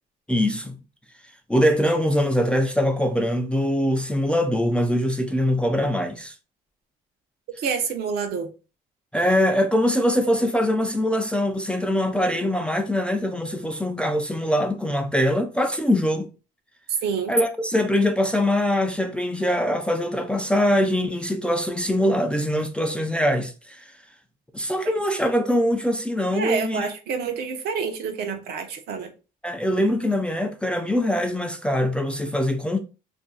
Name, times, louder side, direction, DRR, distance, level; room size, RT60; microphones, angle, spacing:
voice 1, 0.3-0.8 1.5-6.3 9.1-16.3 17.3-23.9 24.5-26.9 29.4-32.8, equal, 5° left, 0.4 m, -23 dB
voice 2, 7.6-8.5 16.9-17.3 26.3-29.1, right 6 dB, 70° right, 0.7 m, -27 dB
2.5 x 2.2 x 3.8 m
cardioid pair, 110°, 17 cm